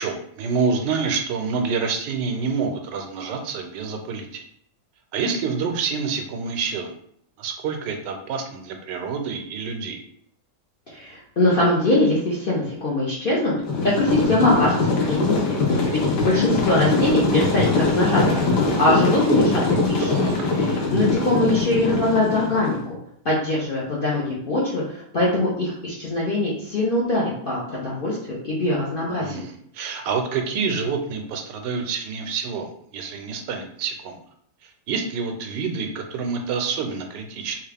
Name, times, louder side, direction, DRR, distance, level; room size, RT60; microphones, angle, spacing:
voice 1, 0.0-4.4 5.1-6.9 7.4-10.0 20.0-20.5 29.2-34.2 34.6-37.6, right 5 dB, 90° right, 4 dB, 1.2 m, -27 dB
voice 2, 10.9-13.5 14.0-20.1 20.5-23.0 23.2-29.4, left 2 dB, 55° left, -6 dB, 0.6 m, -22 dB
sound 1, 13.7-22.8, left 3 dB, 75° left, 1.4 m, -22 dB
3.3 x 2.4 x 3.4 m, 0.68 s
omnidirectional pair, 1.8 m